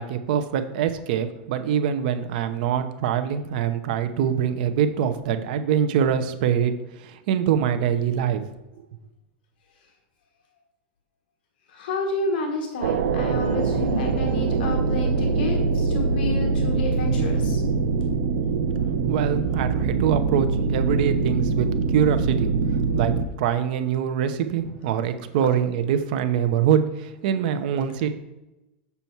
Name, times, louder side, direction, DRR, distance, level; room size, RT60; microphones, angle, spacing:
voice 1, 0.0-8.5 19.1-22.5 22.9-28.1, right 8 dB, 55° right, 9 dB, 0.8 m, -24 dB
voice 2, 11.7-17.6 18.4-18.6 25.4-25.5, left 3 dB, 65° left, 3 dB, 1.3 m, -30 dB
sound 1, 12.8-23.3, right 4 dB, 85° right, 0.8 m, -23 dB
7.0 x 6.9 x 4.5 m, 0.98 s
supercardioid pair, 165°, 6 cm